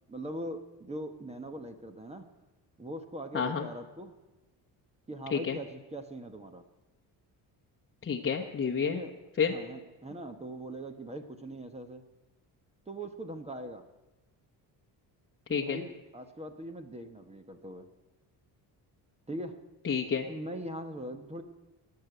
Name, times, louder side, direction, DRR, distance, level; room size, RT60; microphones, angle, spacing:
voice 1, 0.1-2.3 2.8-4.1 5.1-6.6 8.8-9.2 9.5-12.0 12.9-13.8 15.5-17.9 19.3-19.6 20.3-21.4, right 1 dB, 15° right, 7 dB, 1.1 m, -41 dB
voice 2, 3.3-3.7 5.3-5.6 8.0-9.0 9.4-9.6 15.5-15.8 19.8-20.3, left 6 dB, 30° left, 0 dB, 1.1 m, -29 dB
19.5 x 6.9 x 9.0 m, 1.1 s
cardioid pair, 115°, 41 cm